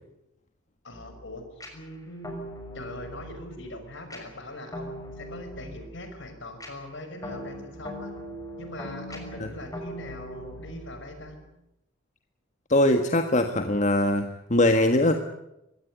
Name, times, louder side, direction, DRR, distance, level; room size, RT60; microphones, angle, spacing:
voice 1, 0.8-1.5 1.7-2.3 2.7-8.1 8.6-11.4, left 1 dB, 65° left, 8 dB, 5.9 m, -41 dB
sound 1, 0.9-11.5, equal, 20° left, 6.0 m, -41 dB
voice 2, 12.7-15.2, left 1 dB, 40° left, 6 dB, 1.6 m, -22 dB
23.5 x 17.5 x 9.8 m, 0.85 s
head